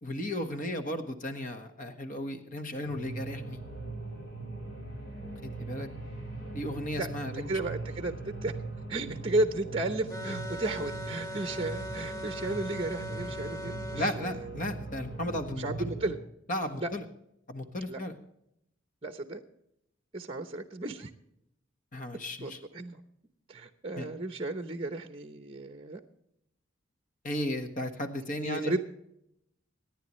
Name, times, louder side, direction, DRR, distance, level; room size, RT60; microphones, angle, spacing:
voice 1, 0.0-3.6 5.4-5.9 6.5-7.5 13.9-15.9 16.5-17.0 17.5-18.1 21.9-22.6 23.9-24.1 27.2-28.8, left 1 dB, 40° left, 6 dB, 1.4 m, -35 dB
sound 1, 2.8-16.1, right 2 dB, 60° left, 4.0 m, -40 dB
voice 2, 7.0-8.5 8.9-14.8 15.5-16.2 16.8-16.9 17.9-18.0 19.0-19.4 20.1-21.1 22.4-23.0 23.5-26.0 28.4-28.8, right 2 dB, 25° right, 7 dB, 0.8 m, -34 dB
sound 2, 10.1-14.2, equal, 15° left, 1.3 m, -40 dB
25.5 x 10.5 x 3.2 m, 0.80 s
head